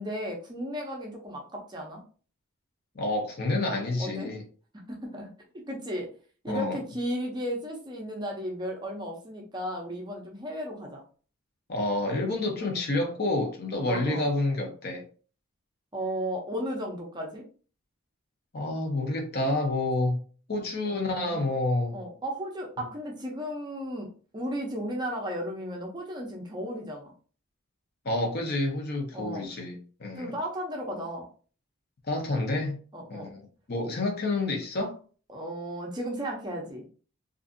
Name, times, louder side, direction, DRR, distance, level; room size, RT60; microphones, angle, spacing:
voice 1, 0.0-2.0 4.0-4.3 4.9-5.3 5.7-6.1 6.4-11.0 13.9-14.3 15.9-17.5 20.8-21.4 21.9-24.1 24.3-27.1 29.1-29.5 30.2-31.3 32.9-33.3 35.3-36.8, equal, 20° right, 0 dB, 0.5 m, -34 dB
voice 2, 2.9-4.4 6.5-6.8 11.7-15.0 18.5-20.2 20.5-22.0 28.0-30.3 32.1-32.8 33.1-35.0, left 2 dB, 45° left, 2 dB, 0.6 m, -29 dB
2.5 x 2.5 x 2.5 m, 0.40 s
head